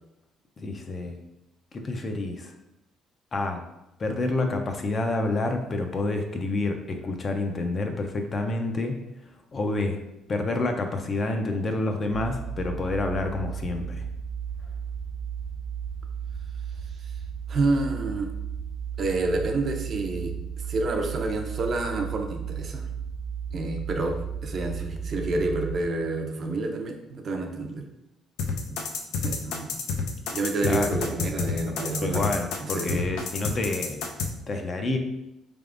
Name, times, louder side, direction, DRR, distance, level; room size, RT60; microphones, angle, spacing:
voice 1, 0.6-1.2 1.7-2.5 3.3-3.6 4.0-9.0 9.5-10.0 10.3-14.0 30.6-30.9 32.0-34.1 34.5-35.0, left 2 dB, 30° left, 4 dB, 0.4 m, -28 dB
sound 1, 12.1-25.8, right 7 dB, 70° right, 1.0 m, -34 dB
voice 2, 17.5-18.3 19.0-20.3 20.7-22.8 23.5-27.8 28.7-28.8 29.2-29.7 30.3-32.2 32.7-33.0, right 2 dB, 40° right, 3 dB, 0.5 m, -28 dB
sound 2, 28.4-34.3, left 5 dB, 85° left, 0.5 m, -29 dB
4.0 x 3.4 x 2.4 m, 0.89 s
cardioid pair, 150°, 0 cm